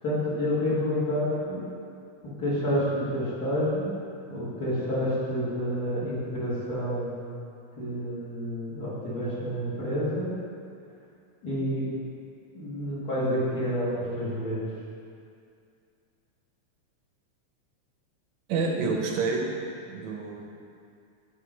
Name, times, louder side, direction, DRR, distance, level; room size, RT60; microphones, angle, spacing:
voice 1, 0.0-1.6 2.2-3.9 4.3-7.1 7.8-10.3 11.4-11.9 12.5-14.6, equal, 35° left, -9 dB, 2.1 m, -29 dB
voice 2, 18.5-19.4 19.9-20.6, right 4 dB, 70° right, 0 dB, 2.2 m, -28 dB
11.0 x 4.1 x 5.1 m, 2.4 s
omnidirectional pair, 3.4 m